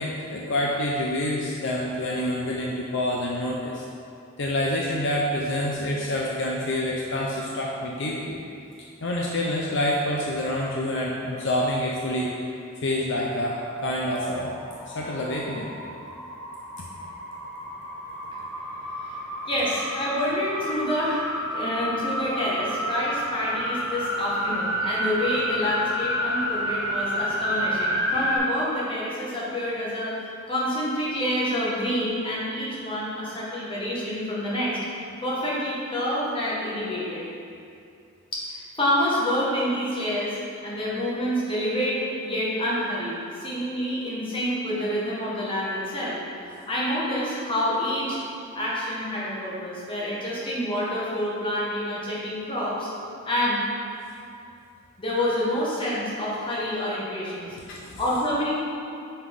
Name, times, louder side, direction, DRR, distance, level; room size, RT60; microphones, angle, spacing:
voice 1, 0.0-3.8 4.4-8.4 9.0-12.3 12.8-14.5 14.9-15.7 57.7-58.0, left 1 dB, 60° left, -3 dB, 0.6 m, -27 dB
sound 1, 14.0-28.4, equal, ahead, 1.2 m, -30 dB
voice 2, 19.5-34.8 35.2-37.3 38.3-46.2 46.5-48.2 48.5-52.9 53.2-53.6 55.0-57.6 58.0-58.6, equal, 25° left, -7 dB, 1.5 m, -27 dB
5.7 x 5.6 x 4.8 m, 2.5 s
head